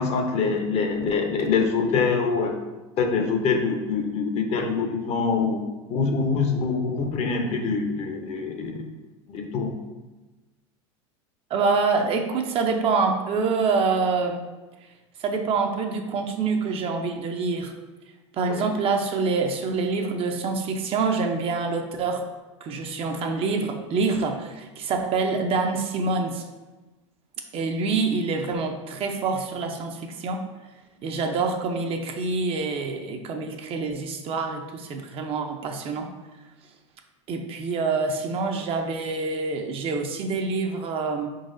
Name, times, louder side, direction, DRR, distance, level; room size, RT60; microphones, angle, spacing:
voice 1, 0.0-2.5 3.0-5.6 5.9-8.9 9.3-9.7 18.5-18.7, left 4 dB, 45° left, 4 dB, 0.7 m, -25 dB
voice 2, 11.5-14.4 15.2-17.7 18.3-22.2 22.6-26.4 27.5-30.5 31.0-36.1 37.3-41.3, right 4 dB, 40° right, 3 dB, 0.6 m, -26 dB
4.6 x 3.9 x 2.6 m, 1.1 s
hypercardioid pair, 100°, 15 cm